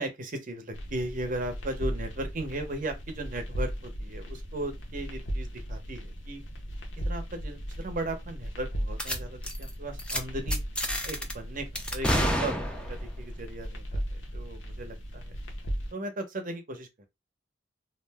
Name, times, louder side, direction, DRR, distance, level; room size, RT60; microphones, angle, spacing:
voice 1, 0.0-6.4 7.0-10.6 11.0-14.0 14.3-15.3 15.9-17.1, right 1 dB, 45° right, 0.7 m, -37 dB
sound 1, 0.7-15.9, equal, 80° left, 0.7 m, -36 dB
sound 2, 9.0-9.2 9.4-9.7 10.0-10.2 10.5-11.3 11.8-13.1, equal, 5° left, 0.4 m, -29 dB
2.5 x 2.0 x 3.4 m
head